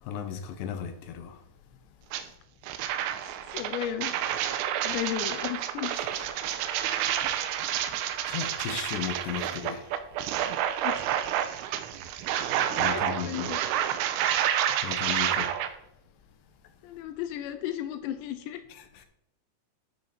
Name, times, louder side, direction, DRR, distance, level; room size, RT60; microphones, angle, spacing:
voice 1, 0.0-1.4 7.3-7.5 8.3-9.9 12.8-13.6 14.8-15.5 18.7-19.0, left 8 dB, 70° left, 2.8 m, -35 dB
sound 1, 2.1-2.2 2.6-15.7, right 11 dB, 90° right, 3.5 m, -29 dB
voice 2, 3.5-4.4 4.8-5.9 10.8-11.2 12.6-13.6 16.8-18.6, left 12 dB, 90° left, 2.5 m, -35 dB
13.5 x 5.6 x 4.4 m
omnidirectional pair, 5.8 m